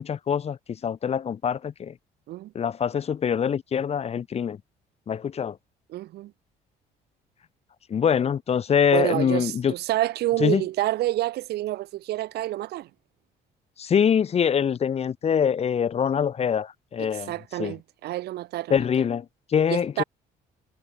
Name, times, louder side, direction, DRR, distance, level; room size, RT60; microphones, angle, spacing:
voice 1, 0.0-1.9 2.5-4.6 5.1-5.6 7.9-9.7 10.4-10.6 13.8-17.3 17.6-17.7 18.7-20.0, left 7 dB, 40° left, 1.0 m, -24 dB
voice 2, 5.9-6.3 8.9-12.9 17.0-18.8 19.7-20.0, right 15 dB, 75° right, 1.6 m, -28 dB
cardioid pair, 110°, 17 cm